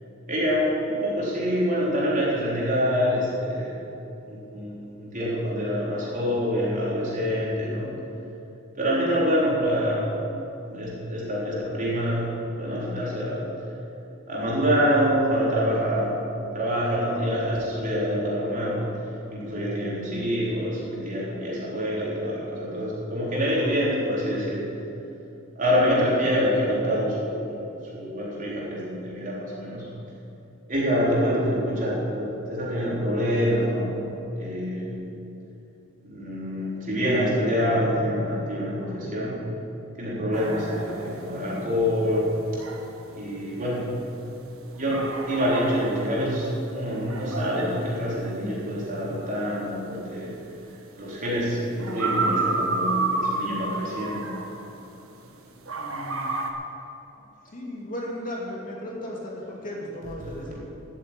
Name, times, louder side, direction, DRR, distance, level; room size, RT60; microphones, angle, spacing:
voice 1, 0.3-3.9 4.3-7.9 8.7-10.1 10.6-13.5 14.3-16.2 16.5-18.9 19.3-24.7 25.6-29.9 30.7-33.9 34.4-35.1 36.0-39.5 40.0-42.4 43.1-43.9 44.7-50.3 51.0-54.2 60.0-60.6, equal, 40° right, -6 dB, 4.1 m, -26 dB
sound 1, 40.3-55.3 55.6-56.5, right 3 dB, 75° right, 1.4 m, -31 dB
voice 2, 55.8-56.3 57.5-60.6, left 1 dB, 40° left, -3 dB, 2.6 m, -35 dB
12.0 x 9.2 x 9.0 m, 2.9 s
head